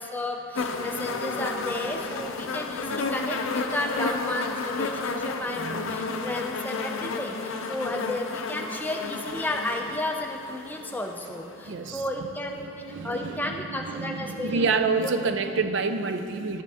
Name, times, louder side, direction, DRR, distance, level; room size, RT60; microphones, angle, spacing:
voice 1, 0.0-15.1, left 1 dB, 10° left, 2 dB, 0.4 m, -33 dB
sound 1, 0.5-11.6 12.6-12.7, left 3 dB, 65° left, 0.5 m, -32 dB
voice 2, 5.6-6.2 8.7-8.8 10.8-10.9 11.7-12.0 12.6-16.6, right 4 dB, 55° right, 8 dB, 0.4 m, -28 dB
12.5 x 6.8 x 3.5 m, 2.8 s
head